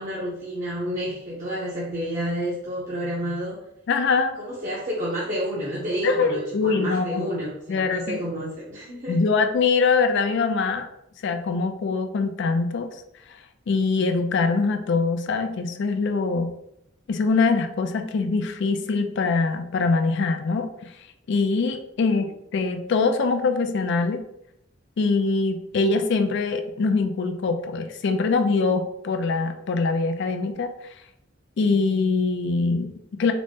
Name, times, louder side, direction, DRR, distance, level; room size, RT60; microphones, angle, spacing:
voice 1, 0.0-3.6 4.4-9.2, equal, 40° right, -6 dB, 0.7 m, -30 dB
voice 2, 3.9-4.4 6.0-7.2 7.7-8.2 9.1-10.9 11.2-12.9 13.7-16.5 17.1-20.7 21.3-24.2 25.0-30.7 31.6-33.3, left 4 dB, 65° left, 7 dB, 0.4 m, -23 dB
3.9 x 2.0 x 3.5 m, 0.80 s
head